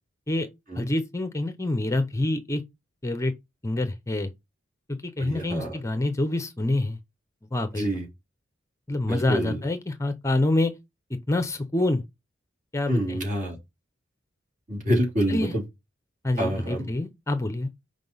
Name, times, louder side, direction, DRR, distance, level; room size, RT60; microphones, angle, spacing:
voice 1, 0.8-2.6 3.0-3.3 3.6-4.3 5.0-7.0 7.5-7.9 8.9-10.7 11.3-12.0 12.7-13.2 15.3-15.5 16.2-17.7, left 2 dB, 15° left, 0.7 m, -26 dB
voice 2, 5.2-5.7 7.7-8.0 9.1-9.6 12.9-13.6 14.7-15.6 16.4-16.9, equal, 45° right, 3.1 m, -26 dB
5.9 x 5.3 x 5.5 m
head